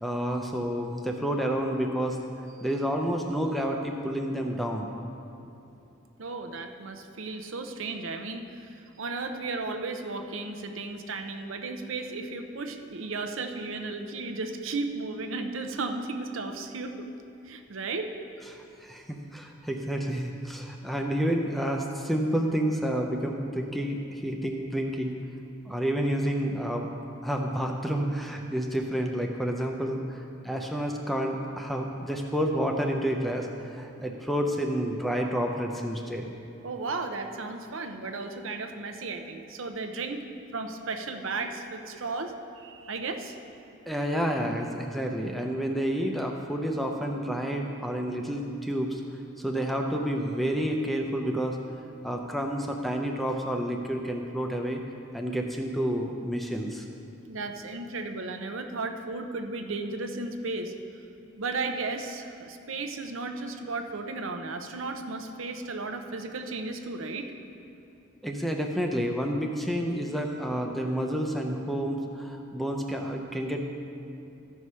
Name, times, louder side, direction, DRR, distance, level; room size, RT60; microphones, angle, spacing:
voice 1, 0.0-2.2 2.6-4.9 18.8-25.2 25.7-26.9 27.2-36.3 43.9-49.0 49.4-51.6 52.0-54.8 55.1-56.8 68.2-73.6, equal, ahead, 2 dB, 0.5 m, -29 dB
voice 2, 6.2-17.1 17.4-18.1 36.6-40.2 40.5-43.3 57.3-60.7 61.4-67.3, right 3 dB, 75° right, 6 dB, 0.7 m, -34 dB
14.0 x 4.8 x 5.5 m, 2.8 s
head